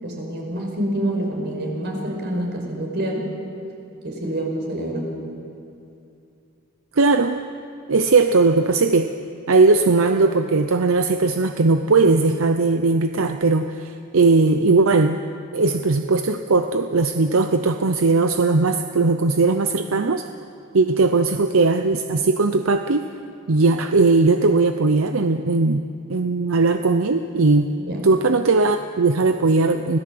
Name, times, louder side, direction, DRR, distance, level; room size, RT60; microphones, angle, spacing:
voice 1, 0.0-3.2 4.0-5.1 27.9-28.0, right 1 dB, 55° right, 0 dB, 5.3 m, -27 dB
voice 2, 6.9-7.4 7.9-9.1 9.5-15.2 15.5-20.3 20.7-23.0 23.5-25.8 26.1-27.7 28.0-30.0, right 3 dB, 85° right, 7 dB, 0.7 m, -18 dB
26.0 x 17.0 x 7.8 m, 2.6 s
head